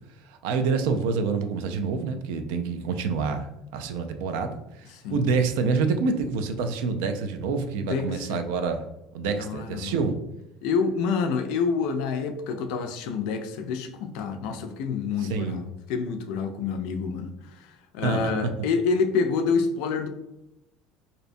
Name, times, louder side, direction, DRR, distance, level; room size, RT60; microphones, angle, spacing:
voice 1, 0.4-3.5 3.7-4.5 5.1-8.8 9.1-10.2 15.3-15.6 18.0-18.3, right 4 dB, 85° right, 0.3 m, -27 dB
voice 2, 7.8-8.4 9.3-10.0 10.6-20.1, left 5 dB, 65° left, 0.3 m, -28 dB
2.6 x 2.1 x 2.5 m
cardioid pair, 170°, 0 cm